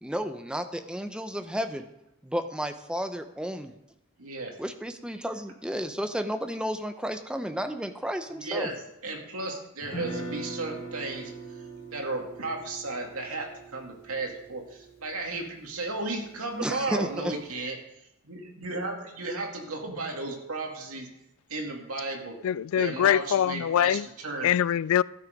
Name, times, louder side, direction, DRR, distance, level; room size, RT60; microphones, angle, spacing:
voice 1, 0.0-1.9 2.2-3.7 4.6-8.7 16.6-17.3, equal, 5° right, 0.7 m, -32 dB
voice 2, 4.2-4.5 8.4-11.3 11.9-17.8 18.2-21.1 21.5-22.3 22.7-24.5, right 2 dB, 90° right, 2.4 m, -34 dB
Guitar, 9.8-15.9, right 2 dB, 25° left, 3.5 m, -41 dB
voice 3, 22.4-24.1 24.4-25.0, left 10 dB, 75° left, 0.3 m, -23 dB
13.0 x 8.8 x 5.3 m
head